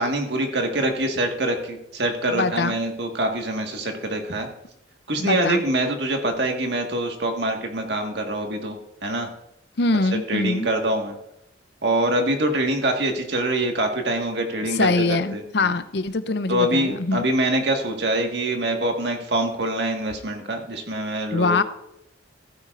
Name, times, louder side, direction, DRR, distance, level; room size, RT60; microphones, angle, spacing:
voice 1, 0.0-4.5 5.1-9.3 10.1-11.2 11.8-15.7 16.5-21.6, right 1 dB, 65° right, 3 dB, 1.7 m, -25 dB
voice 2, 2.3-2.8 5.2-5.6 9.8-10.7 14.7-17.3 21.3-21.6, left 3 dB, 60° left, 12 dB, 0.6 m, -23 dB
15.0 x 9.8 x 2.5 m, 0.84 s
head